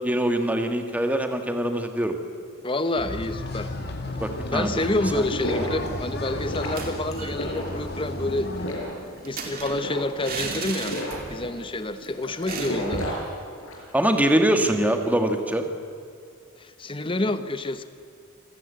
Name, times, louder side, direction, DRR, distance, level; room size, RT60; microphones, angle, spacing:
voice 1, 0.0-2.2 4.2-4.7 5.1-5.3 13.9-15.7, right 1 dB, 5° right, 5 dB, 1.6 m, -23 dB
voice 2, 2.6-3.7 4.5-8.5 8.8-8.9 9.2-11.0 11.3-13.1 16.6-17.8, left 2 dB, 25° left, 11 dB, 1.0 m, -28 dB
sound 1, 2.9-8.7, left 1 dB, 50° left, 2.6 m, -33 dB
sound 2, 5.2-13.9, left 1 dB, 80° left, 6.0 m, -34 dB
sound 3, 6.6-7.4 7.7-7.8 8.1-11.5 11.8-12.0 12.5-13.2, right 4 dB, 45° right, 3.0 m, -35 dB
27.0 x 15.5 x 9.1 m, 2.3 s
head